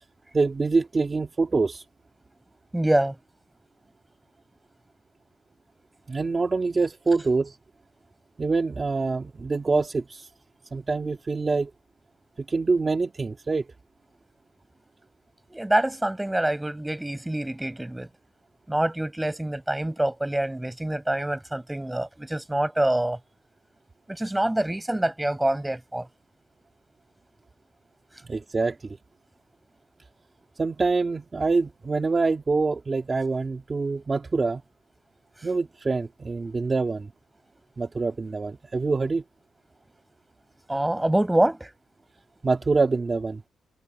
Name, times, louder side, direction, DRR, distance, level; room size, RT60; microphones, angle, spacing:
voice 1, 0.3-1.8 6.1-7.6 8.4-10.3 10.7-11.7 12.5-13.7 28.2-29.0 30.6-34.6 35.4-37.1 37.8-39.2 42.4-43.4, right 3 dB, 25° right, 2.8 m, -25 dB
voice 2, 2.7-3.2 15.5-18.1 18.7-23.2 24.1-26.1 40.7-41.7, right 1 dB, 10° right, 5.7 m, -25 dB
wide cardioid pair, 145°, 0 cm